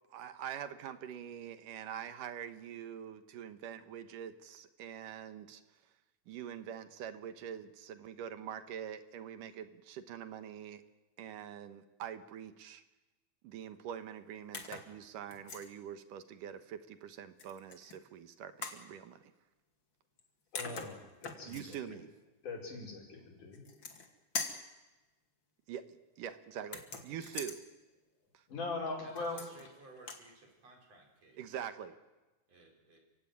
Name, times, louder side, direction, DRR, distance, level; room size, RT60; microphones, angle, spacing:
voice 1, 0.1-5.6 6.3-10.8 11.2-12.8 13.4-19.2 21.4-22.1 25.7-27.6 28.3-28.4 31.4-32.0, right 9 dB, 90° right, 9 dB, 2.9 m, -44 dB
sound 1, 14.5-14.9 15.3-15.7 17.4-18.0 18.6-18.8 20.2-20.3 20.6-21.8 23.5-24.1 24.4-24.7 26.6-27.6 29.2-29.7 30.0-30.3, left 5 dB, 40° left, 2.7 m, -42 dB
voice 2, 20.5-22.0 22.4-23.7 28.5-29.5, left 3 dB, 75° left, 0 dB, 6.8 m, -41 dB
voice 3, 29.6-30.3 30.6-31.4 32.5-33.0, right 2 dB, 55° right, 1 dB, 5.6 m, -57 dB
29.5 x 16.5 x 9.5 m, 1.1 s
omnidirectional pair, 3.6 m